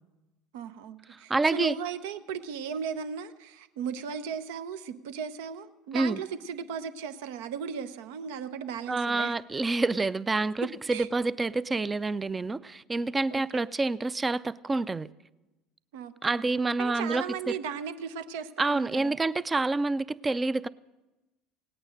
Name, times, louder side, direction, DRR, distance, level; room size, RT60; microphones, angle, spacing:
voice 1, 0.5-9.3 10.9-11.1 13.3-13.6 15.9-16.4 16.8-19.2, right 7 dB, 75° right, 0.6 m, -36 dB
voice 2, 1.1-1.8 5.9-6.2 8.9-15.1 16.2-17.6 18.6-20.7, right 3 dB, 20° right, 0.4 m, -28 dB
17.5 x 9.0 x 6.4 m
hypercardioid pair, 75°, 0 cm